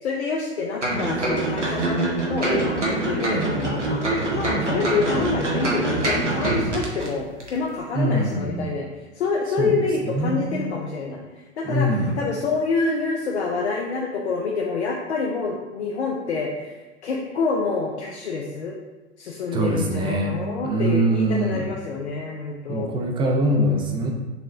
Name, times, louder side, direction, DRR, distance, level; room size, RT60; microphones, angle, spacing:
voice 1, 0.0-4.0 4.3-8.9 9.1-18.8 19.2-22.9, left 4 dB, 70° left, -1 dB, 0.6 m, -27 dB
sound 1, 0.8-7.1 7.4-7.5, right 2 dB, 85° right, 1.0 m, -24 dB
voice 2, 7.9-8.7 9.6-9.8 10.0-10.6 11.6-12.1 19.5-21.7 22.7-24.1, right 1 dB, 15° right, 2 dB, 0.5 m, -23 dB
6.6 x 2.9 x 2.5 m, 1.2 s
figure-of-eight pair, 90°, 35 cm